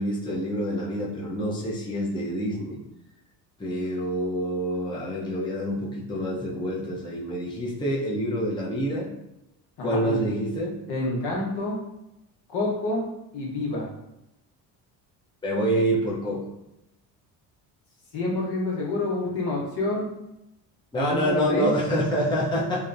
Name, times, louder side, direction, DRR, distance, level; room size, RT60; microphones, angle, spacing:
voice 1, 0.0-2.8 3.6-9.1 9.8-10.7 15.4-16.5 20.9-22.9, right 1 dB, 10° left, -5 dB, 0.6 m, -27 dB
voice 2, 9.8-10.2 10.9-11.8 12.5-13.1 13.3-13.9 18.1-20.1 20.9-21.7, left 2 dB, 60° left, -3 dB, 1.0 m, -28 dB
2.8 x 2.1 x 2.5 m, 0.88 s
supercardioid pair, 70°, 44 cm